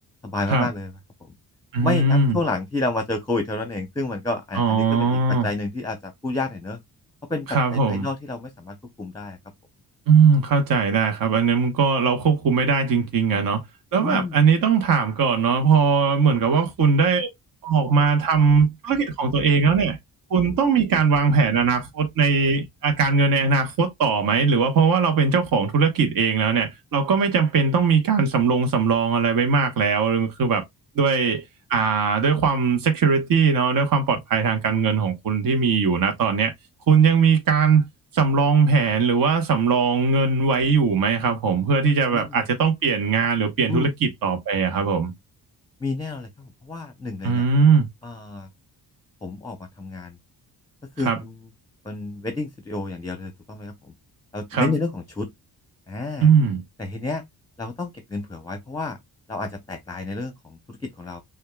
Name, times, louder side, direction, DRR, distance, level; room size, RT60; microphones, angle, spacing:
voice 1, 0.2-0.9 1.8-6.8 7.3-9.4 14.0-14.4 42.1-42.5 43.7-43.9 45.8-47.5 48.0-48.5 49.2-50.2 51.0-51.4 51.8-53.9 54.3-55.3 55.9-56.3 56.8-57.2 57.6-59.0 59.3-61.2, left 3 dB, 10° left, 0.7 m, -30 dB
voice 2, 1.7-2.4 4.5-5.5 7.5-8.1 10.1-13.6 13.9-17.3 17.6-20.0 20.3-30.6 30.9-31.4 31.7-36.5 36.9-37.8 38.1-45.1 47.2-47.9 51.0-51.2 54.5-54.7 56.2-56.6, right 5 dB, 55° right, 1.0 m, -20 dB
6.3 x 2.4 x 2.3 m
cardioid pair, 110°, 40 cm